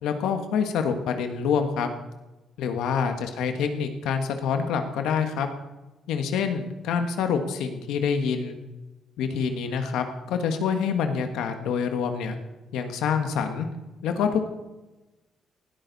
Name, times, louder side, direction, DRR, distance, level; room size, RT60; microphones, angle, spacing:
voice 1, 0.0-1.9 2.6-5.5 6.1-8.6 9.2-12.4 12.7-13.7 14.0-14.4, left 6 dB, 90° left, 6 dB, 1.5 m, -26 dB
19.0 x 13.0 x 4.2 m, 1.1 s
cardioid pair, 90°, 0 cm